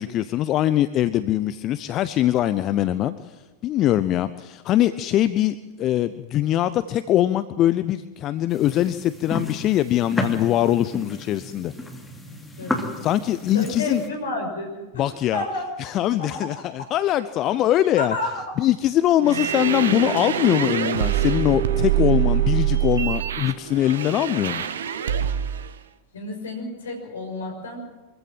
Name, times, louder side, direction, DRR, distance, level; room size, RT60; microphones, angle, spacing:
voice 1, 0.0-11.7 13.0-14.0 14.9-15.4 15.8-18.2 18.6-24.6, left 12 dB, 35° left, 14 dB, 0.7 m, -22 dB
sound 1, 8.5-14.1, left 1 dB, 5° left, 2.9 m, -33 dB
voice 2, 13.5-14.9 15.3-15.7 16.2-16.5 18.0-18.4 26.1-27.8, left 2 dB, 65° left, 3 dB, 6.0 m, -30 dB
sound 2, 19.2-25.7, right 11 dB, 65° right, 1.1 m, -24 dB
24.5 x 15.5 x 7.6 m, 1.2 s
figure-of-eight pair, 90°, 0 cm